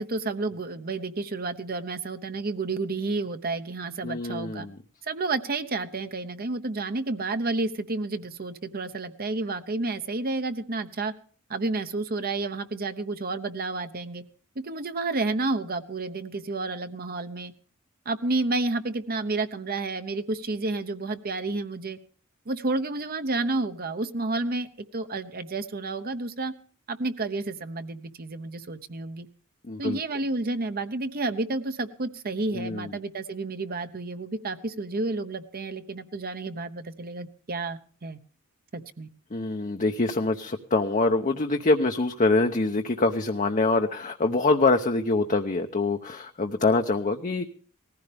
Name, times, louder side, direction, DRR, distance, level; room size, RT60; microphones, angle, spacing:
voice 1, 0.0-4.7 5.0-11.1 11.5-14.2 14.6-17.5 18.1-22.0 22.5-26.5 26.9-29.3 29.8-38.2 38.7-39.1, right 3 dB, 45° right, 10 dB, 1.0 m, -30 dB
voice 2, 4.0-4.8 29.7-30.0 32.5-32.9 39.3-47.5, left 3 dB, 35° left, 5 dB, 0.8 m, -25 dB
19.0 x 15.5 x 3.5 m, 0.43 s
head